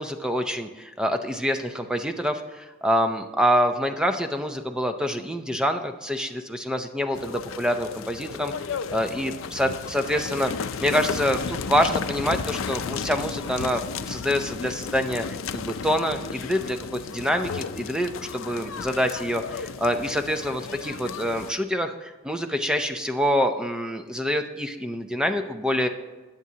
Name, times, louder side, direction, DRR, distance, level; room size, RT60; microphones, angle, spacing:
voice 1, 0.0-8.5 8.9-15.2 15.5-25.9, equal, 5° right, 6 dB, 0.5 m, -26 dB
sound 1, 7.1-21.5, left 6 dB, 80° left, 0.5 m, -33 dB
20.0 x 7.3 x 2.8 m, 1.3 s
head